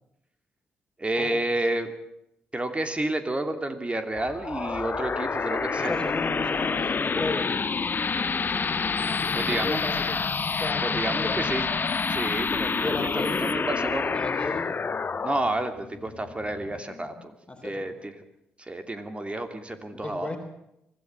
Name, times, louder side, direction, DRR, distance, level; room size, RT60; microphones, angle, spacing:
voice 1, 1.0-1.9 2.5-6.1 9.3-9.9 10.8-11.7 12.1-14.2 15.2-17.3 17.6-18.1 18.6-20.4, right 1 dB, 20° right, 8 dB, 2.8 m, -30 dB
sound 1, 4.1-17.3, left 5 dB, 40° left, 1.1 m, -28 dB
voice 2, 5.7-7.5 9.1-10.2 10.6-11.5 12.8-13.6 14.1-14.7 17.5-17.9 19.9-20.4, left 2 dB, 20° left, 3 dB, 3.9 m, -34 dB
25.0 x 14.0 x 8.9 m, 0.83 s
hypercardioid pair, 45°, 5 cm